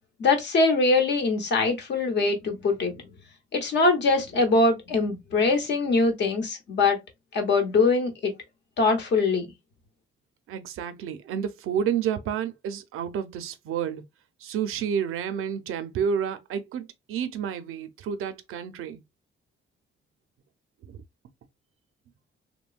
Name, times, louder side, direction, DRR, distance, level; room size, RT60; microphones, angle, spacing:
voice 1, 0.2-3.0 3.5-7.0 7.3-8.3 8.8-9.5, left 3 dB, 55° left, 1.0 m, -22 dB
voice 2, 10.5-14.0 14.4-19.0 20.9-21.0, right 8 dB, 85° right, 0.5 m, -30 dB
3.0 x 2.2 x 2.4 m
cardioid pair, 135°, 21 cm